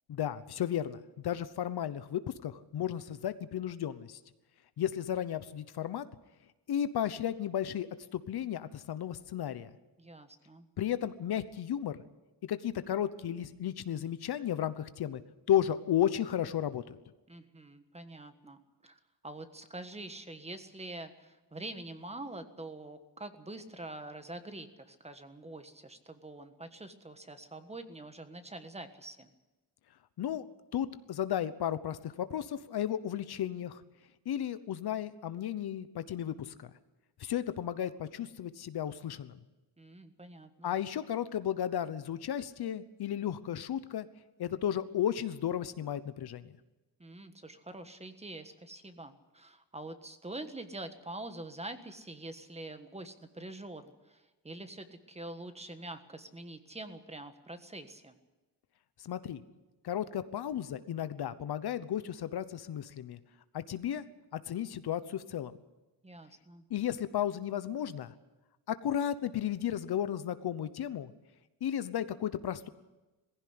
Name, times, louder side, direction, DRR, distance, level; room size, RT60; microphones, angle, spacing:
voice 1, 0.1-4.2 4.8-6.0 6.7-9.7 10.8-12.0 12.5-15.2 15.5-17.0 30.2-30.4 30.7-33.8 34.2-36.7 37.2-39.3 40.6-44.1 44.4-46.5 59.0-59.4 59.8-63.2 63.5-64.0 64.3-65.6 66.7-68.1 68.7-71.1 71.6-72.7, left 10 dB, 65° left, 13 dB, 1.0 m, -34 dB
voice 2, 10.0-10.7 17.3-29.3 39.8-40.8 47.0-58.2 66.0-66.6, right 2 dB, 15° right, 9 dB, 1.5 m, -45 dB
19.0 x 16.0 x 9.6 m, 1.1 s
cardioid pair, 125°, 41 cm